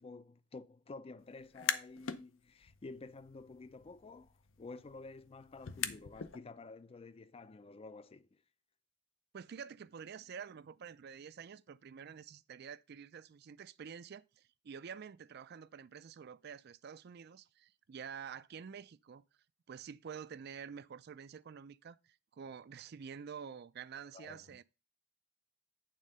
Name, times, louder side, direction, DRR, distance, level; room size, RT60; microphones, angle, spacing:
voice 1, 0.0-8.4 24.1-24.6, left 3 dB, 30° left, 0.4 m, -51 dB
sound 1, 1.4-2.2 2.6-6.4, left 8 dB, 70° left, 0.6 m, -42 dB
voice 2, 9.3-19.2 19.7-24.6, right 7 dB, 55° right, 0.4 m, -48 dB
9.1 x 3.7 x 5.4 m
head